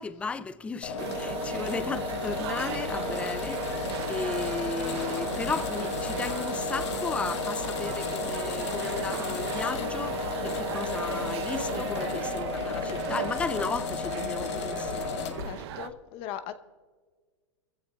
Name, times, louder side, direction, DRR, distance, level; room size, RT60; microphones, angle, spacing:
voice 1, 0.0-15.5, left 4 dB, 5° left, 0.4 m, -35 dB
sound 1, 0.8-15.5, left 5 dB, 65° left, 1.3 m, -33 dB
sound 2, 1.0-15.9, right 7 dB, 55° right, 0.8 m, -36 dB
voice 2, 11.7-12.3 15.4-16.5, left 10 dB, 35° left, 0.9 m, -40 dB
22.5 x 15.0 x 2.4 m
hypercardioid pair, 135°, 16 cm